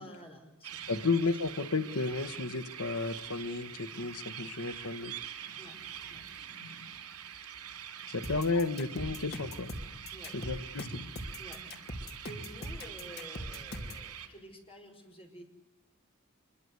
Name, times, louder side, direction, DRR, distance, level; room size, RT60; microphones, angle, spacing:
voice 1, 0.0-1.0 5.6-5.8 6.1-6.3 8.1-8.4 10.1-10.4 11.4-11.6 12.2-15.4, equal, 25° left, 3 dB, 5.1 m, -50 dB
sound 1, 0.6-14.3, right 9 dB, 85° right, 3.7 m, -45 dB
sound 2, 0.7-14.4, left 1 dB, 60° right, 6.3 m, -57 dB
voice 2, 0.9-5.1 8.1-9.7 10.3-11.0, left 3 dB, 70° left, 10 dB, 1.3 m, -32 dB
sound 3, 8.2-14.1, left 1 dB, 45° left, 2.8 m, -41 dB
26.0 x 22.5 x 8.1 m, 0.89 s
head